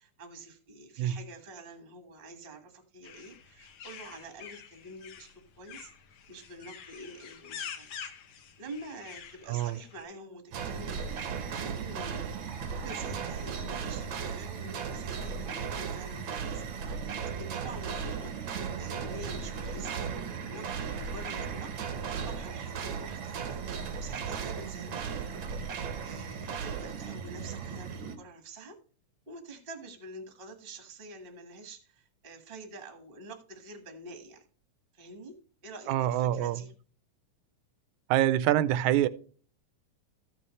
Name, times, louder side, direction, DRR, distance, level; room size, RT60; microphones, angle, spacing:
voice 1, 0.0-5.9 6.3-8.1 8.6-12.4 12.7-16.7 17.0-25.3 26.0-28.8 29.3-34.4 34.9-35.3 35.6-36.7, right 2 dB, 30° right, 1.1 m, -47 dB
sound 1, 3.0-10.0, left 8 dB, 75° left, 1.2 m, -46 dB
sound 2, 10.5-28.2, right 6 dB, 65° right, 1.2 m, -36 dB
voice 2, 35.9-36.6 38.1-39.1, right 12 dB, 80° right, 1.8 m, -25 dB
14.5 x 6.9 x 3.2 m
omnidirectional pair, 3.8 m